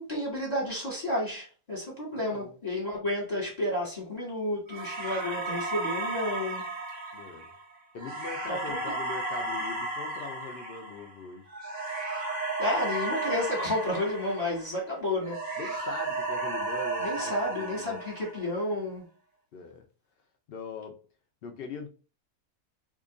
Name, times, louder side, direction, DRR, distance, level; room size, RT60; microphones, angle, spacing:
voice 1, 0.0-6.6 8.5-8.8 12.6-15.4 17.0-19.1, left 1 dB, 30° left, 1.1 m, -31 dB
voice 2, 2.2-2.5 7.1-7.5 7.9-11.5 15.6-18.0 19.5-19.9 20.5-21.0 21.4-21.9, left 4 dB, 80° left, 0.5 m, -41 dB
sound 1, 4.7-14.9 15.2-18.6, right 2 dB, 40° right, 0.7 m, -34 dB
2.8 x 2.5 x 3.7 m
omnidirectional pair, 1.7 m